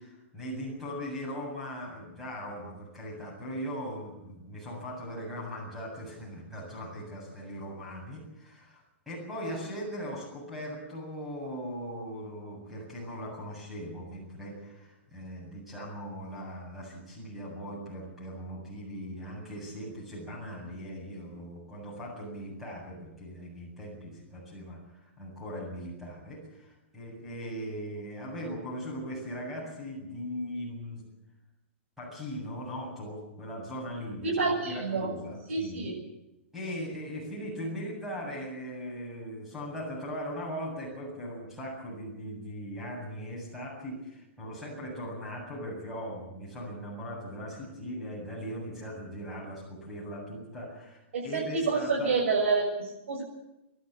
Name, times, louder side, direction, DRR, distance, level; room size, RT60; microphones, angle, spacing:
voice 1, 0.0-31.0 32.0-35.9 36.5-52.1, equal, ahead, -4 dB, 7.9 m, -39 dB
voice 2, 34.2-35.1 35.5-35.9 51.1-53.2, right 4 dB, 80° right, -3 dB, 7.3 m, -28 dB
28.0 x 12.0 x 9.8 m, 0.92 s
hypercardioid pair, 165°, 7 cm